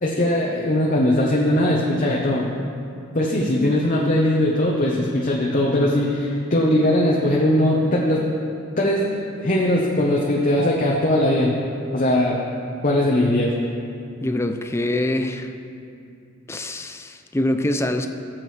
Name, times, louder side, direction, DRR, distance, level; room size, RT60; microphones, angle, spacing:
voice 1, 0.0-2.5 3.1-8.2 8.8-9.0 9.4-11.6 11.9-12.4 12.8-13.5, left 1 dB, 35° left, -3 dB, 0.9 m, -20 dB
voice 2, 14.2-15.5 16.5-18.1, left 1 dB, 10° left, 6 dB, 0.4 m, -24 dB
18.5 x 7.5 x 3.3 m, 2.6 s
head